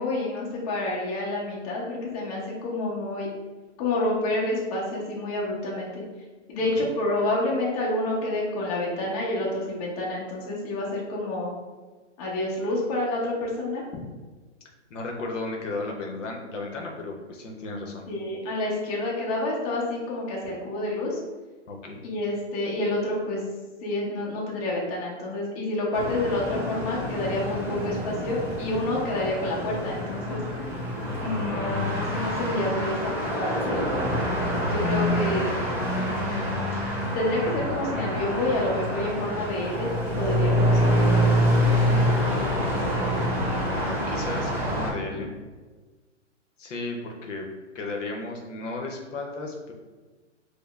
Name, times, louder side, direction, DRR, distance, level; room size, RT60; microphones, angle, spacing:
voice 1, 0.0-3.3 3.8-6.0 6.5-11.5 12.2-13.8 18.1-21.2 22.0-23.4 23.8-30.4 31.2-33.8 34.6-35.5 35.8-36.6 37.1-39.9 40.2-41.1, left 2 dB, 30° left, -4 dB, 0.9 m, -28 dB
voice 2, 14.9-18.1 21.7-22.0 41.6-45.3 46.6-47.5 47.7-49.7, left 2 dB, 80° left, 1 dB, 0.8 m, -34 dB
sound 1, 25.9-44.9, equal, 5° right, 0.8 m, -26 dB
5.0 x 2.1 x 2.4 m, 1.3 s
hypercardioid pair, 155°, 37 cm